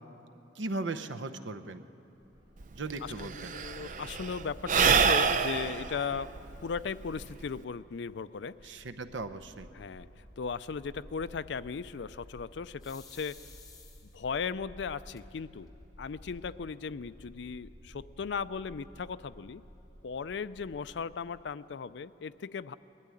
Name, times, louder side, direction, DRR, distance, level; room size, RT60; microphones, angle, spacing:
voice 1, 0.5-1.8 2.7-3.5 8.6-9.7, right 3 dB, 80° right, 9 dB, 0.8 m, -37 dB
Bark, 2.1-21.3, equal, 25° right, 5.0 m, -54 dB
Sigh / Breathing, 2.6-2.7 2.9-7.6, right 6 dB, 40° right, 0.5 m, -27 dB
voice 2, 3.0-6.4 6.6-8.7 9.7-13.4 14.1-15.7 16.0-19.6 20.0-22.7, left 5 dB, 70° left, 15 dB, 0.4 m, -37 dB
sound 1, 12.8-14.4 15.2-15.3 15.7-15.8 16.0-16.6, left 5 dB, 20° left, 1.4 m, -54 dB
20.5 x 12.5 x 9.8 m, 2.9 s
head